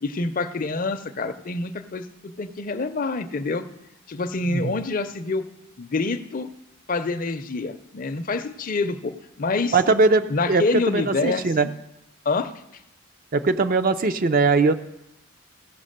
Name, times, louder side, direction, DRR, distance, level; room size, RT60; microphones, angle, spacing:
voice 1, 0.0-3.6 4.1-5.4 5.8-6.5 6.9-9.8 10.3-11.5 12.3-12.5, left 3 dB, 40° left, 10 dB, 0.5 m, -26 dB
voice 2, 9.7-11.7 13.3-14.7, right 3 dB, 40° right, 10 dB, 0.5 m, -20 dB
16.0 x 5.9 x 6.6 m, 0.86 s
head